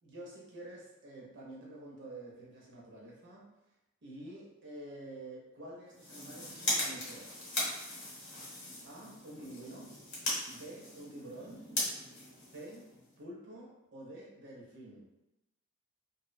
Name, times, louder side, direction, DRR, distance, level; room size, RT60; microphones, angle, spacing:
voice 1, 0.0-3.5 4.0-7.3 8.8-10.0 10.4-11.7 12.5-12.9 13.2-15.1, right 1 dB, 55° right, -4 dB, 0.5 m, -48 dB
sound 1, 5.9-13.2, left 1 dB, 55° left, 0.8 m, -39 dB
2.5 x 2.0 x 2.5 m, 0.95 s
head